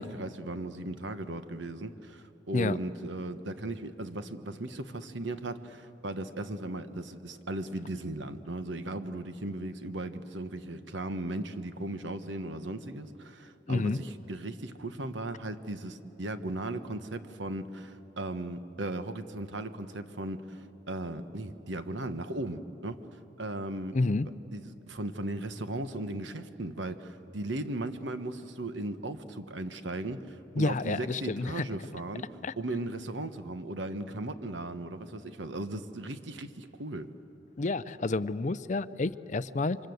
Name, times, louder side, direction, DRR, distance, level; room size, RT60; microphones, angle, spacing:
voice 1, 0.0-23.0 23.4-24.0 24.5-32.2 32.6-37.1, right 2 dB, 70° right, 10 dB, 1.2 m, -37 dB
voice 2, 13.7-14.0 23.9-24.3 30.6-31.7 32.4-32.5 37.6-39.8, left 3 dB, 40° left, 15 dB, 0.5 m, -29 dB
28.0 x 25.0 x 7.9 m, 2.9 s
head